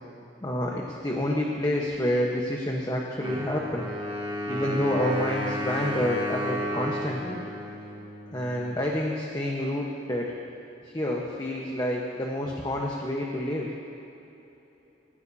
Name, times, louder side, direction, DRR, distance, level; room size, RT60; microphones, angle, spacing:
voice 1, 0.4-3.9 4.5-7.4 8.3-10.3 10.9-13.7, left 1 dB, 20° left, -2 dB, 1.2 m, -28 dB
Wind instrument woodwind instrument, 3.2-8.9, equal, 25° right, 1.7 m, -33 dB
27.0 x 15.0 x 2.8 m, 2.9 s
head